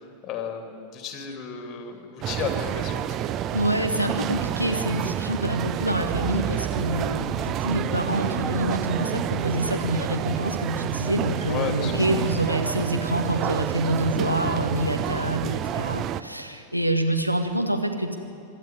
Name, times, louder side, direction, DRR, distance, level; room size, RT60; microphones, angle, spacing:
voice 1, 0.0-3.2 11.5-12.1, left 7 dB, 30° left, 5 dB, 2.9 m, -33 dB
sound 1, 2.2-16.2, right 11 dB, 35° right, 0.5 m, -29 dB
voice 2, 3.5-18.2, right 1 dB, 90° right, 4 dB, 1.6 m, -26 dB
25.0 x 11.5 x 9.8 m, 2.8 s
figure-of-eight pair, 90°, 0 cm